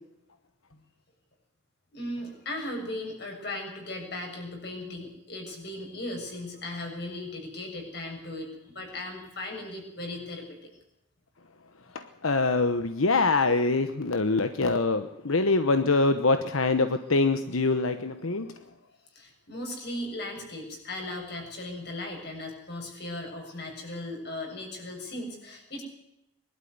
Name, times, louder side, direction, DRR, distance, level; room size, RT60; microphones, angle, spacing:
voice 1, 1.9-10.5 19.1-25.8, left 1 dB, 50° left, 2 dB, 7.1 m, -37 dB
voice 2, 11.9-18.5, left 3 dB, 90° left, 9 dB, 1.1 m, -24 dB
22.5 x 12.5 x 9.5 m, 0.84 s
head